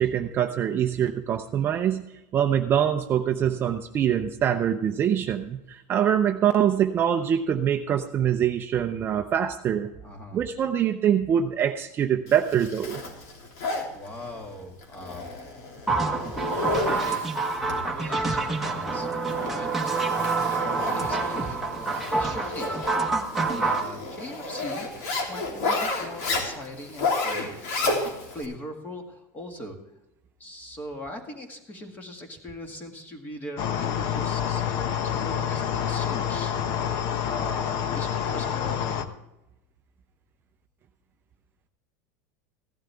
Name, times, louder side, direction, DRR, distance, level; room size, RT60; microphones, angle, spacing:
voice 1, 0.0-2.0 2.3-9.9 10.3-13.0, right 9 dB, 25° right, 5 dB, 0.6 m, -24 dB
voice 2, 10.0-10.4 13.9-15.3 16.9-17.3 17.8-19.1 19.4-29.8 30.4-34.6 35.0-36.5 37.2-39.1, left 1 dB, 20° left, 4 dB, 2.0 m, -40 dB
Zipper (clothing), 12.3-28.4, left 3 dB, 70° left, 3.2 m, -32 dB
sound 1, 15.9-23.9, right 3 dB, ahead, 1.2 m, -27 dB
sound 2, 33.6-39.0, left 8 dB, 45° left, 0.9 m, -28 dB
16.0 x 11.5 x 3.5 m, 0.94 s
supercardioid pair, 160°, 9 cm